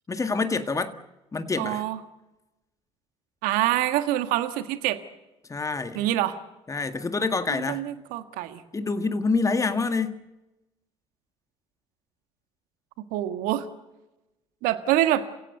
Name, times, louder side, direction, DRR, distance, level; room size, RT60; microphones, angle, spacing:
voice 1, 0.1-1.0 1.3-1.8 5.5-6.1 6.7-7.9 8.7-10.2, left 4 dB, 20° left, 1.8 m, -27 dB
voice 2, 1.6-2.0 3.4-5.0 5.9-6.4 7.7-8.6 13.1-13.6 14.6-15.2, right 14 dB, 65° right, 1.6 m, -25 dB
29.5 x 16.5 x 8.2 m
hypercardioid pair, 60°, 15 cm